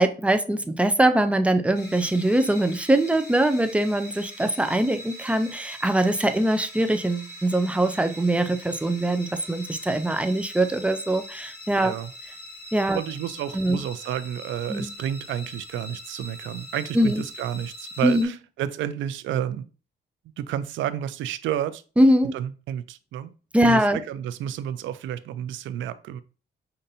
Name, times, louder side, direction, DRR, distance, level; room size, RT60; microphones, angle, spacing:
voice 1, 0.0-12.0 12.7-13.0 13.5-13.8 14.7-14.9 16.9-17.2 18.0-18.3 22.0-22.3 23.5-24.0, right 1 dB, 5° right, 9 dB, 0.4 m, -22 dB
sound 1, 1.7-18.3, equal, 50° left, 1.5 m, -42 dB
voice 2, 11.8-12.1 12.9-19.6 20.4-21.8 22.3-23.3 23.6-26.2, right 10 dB, 75° right, 14 dB, 0.4 m, -31 dB
5.4 x 2.6 x 2.6 m, 0.36 s
cardioid pair, 90°, 20 cm